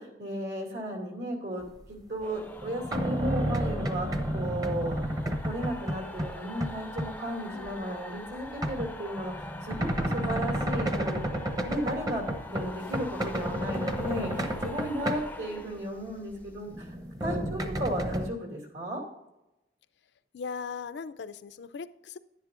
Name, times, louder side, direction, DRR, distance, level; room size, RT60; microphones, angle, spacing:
voice 1, 0.0-5.2 5.4-11.2 11.6-16.9 17.2-19.0, equal, 75° right, 0 dB, 2.6 m, -35 dB
sound 1, 2.2-16.4, left 2 dB, 10° left, 0.4 m, -43 dB
sound 2, 2.2-6.3 6.6-7.1 7.6-15.6 16.2-18.3, equal, 20° right, 0.7 m, -31 dB
voice 2, 7.5-8.0 14.6-14.7 15.0-15.2 17.4-17.8 20.3-22.2, left 5 dB, 75° left, 12 dB, 0.4 m, -40 dB
10.5 x 10.0 x 2.5 m, 0.93 s
head